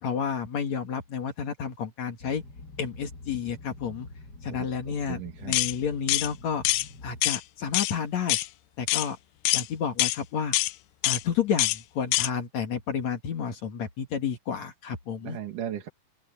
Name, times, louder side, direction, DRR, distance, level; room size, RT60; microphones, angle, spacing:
voice 1, 0.0-2.4 2.8-4.1 4.4-6.6 7.0-8.4 8.8-9.2 9.5-10.6 11.0-15.4, left 7 dB, 60° left, 3.1 m, -31 dB
Boat Water vehicle, 2.2-7.2, left 2 dB, 35° left, 2.1 m, -46 dB
voice 2, 4.5-5.6 15.2-15.9, right 9 dB, 75° right, 3.6 m, -37 dB
sound 1, 5.5-5.7 6.1-6.3 6.6-6.9 7.2-7.4 7.7-7.9 8.3-8.5 8.9-9.1 9.5-9.7 10.0-10.2 10.5-10.7 11.0-11.2 11.6-11.8 12.1-12.3, left 18 dB, 85° left, 2.2 m, -24 dB
open air
omnidirectional pair, 3.7 m